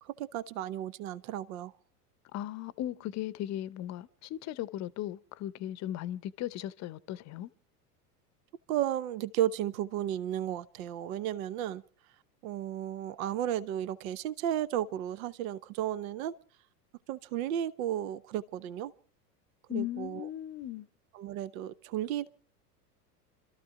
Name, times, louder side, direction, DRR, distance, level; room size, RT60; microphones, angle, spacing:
voice 1, 0.0-1.7 8.7-11.8 12.4-16.3 17.1-18.9 19.7-20.3 21.1-22.3, right 11 dB, 60° right, 1.0 m, -33 dB
voice 2, 2.3-7.5 19.7-20.9, left 13 dB, 35° left, 0.8 m, -37 dB
26.5 x 13.5 x 3.7 m
hypercardioid pair, 90°, 47 cm